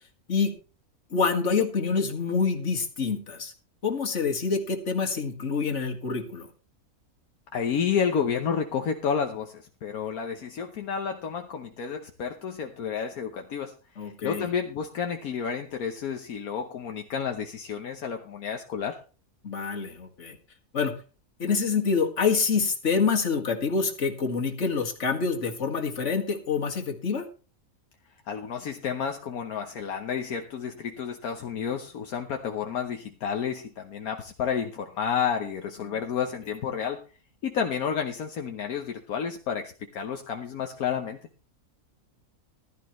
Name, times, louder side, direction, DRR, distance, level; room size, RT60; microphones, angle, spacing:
voice 1, 1.1-3.5 3.8-6.5 14.0-14.5 19.4-20.4 20.7-20.9 21.4-27.3 35.9-36.0, left 5 dB, 50° left, 3 dB, 2.2 m, -26 dB
voice 2, 7.5-13.7 14.0-19.0 28.3-37.0 37.4-41.2, left 7 dB, 75° left, 4 dB, 1.5 m, -30 dB
15.0 x 13.0 x 3.1 m, 0.35 s
omnidirectional pair, 1.6 m